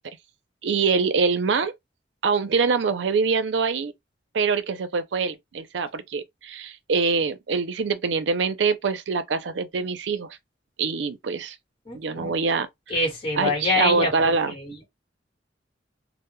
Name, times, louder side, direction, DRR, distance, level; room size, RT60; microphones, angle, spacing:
voice 1, 0.6-1.7 2.2-3.9 4.3-10.4 10.8-11.6 11.9-13.0 13.4-14.5, right 5 dB, 70° right, 0.5 m, -24 dB
voice 2, 11.9-12.3 12.9-14.1 14.5-14.9, left 2 dB, 30° left, 1.1 m, -25 dB
2.2 x 2.0 x 3.0 m
head